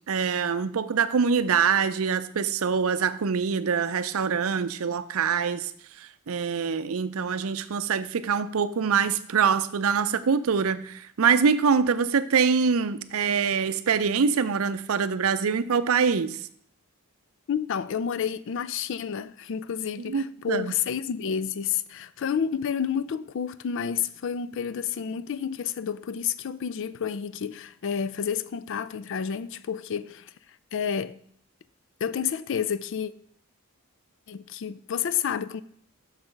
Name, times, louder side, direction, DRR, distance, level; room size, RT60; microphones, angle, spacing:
voice 1, 0.1-5.7 6.0-16.4 20.0-20.7, right 6 dB, 70° right, 0.5 m, -24 dB
voice 2, 17.5-30.3 30.7-31.2 32.0-33.1 34.3-35.6, left 7 dB, 55° left, 0.4 m, -30 dB
6.5 x 5.9 x 5.1 m
head